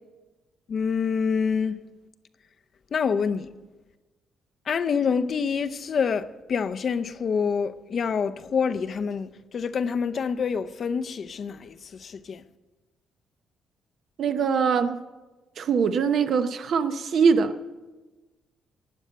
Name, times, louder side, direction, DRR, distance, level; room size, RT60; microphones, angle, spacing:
voice 1, 0.7-1.8 2.9-3.5 4.7-12.4, left 6 dB, 50° left, 0.6 m, -27 dB
voice 2, 14.2-15.0 15.6-17.6, right 6 dB, 65° right, 0.8 m, -22 dB
12.0 x 9.1 x 8.0 m
cardioid pair, 90°, 0 cm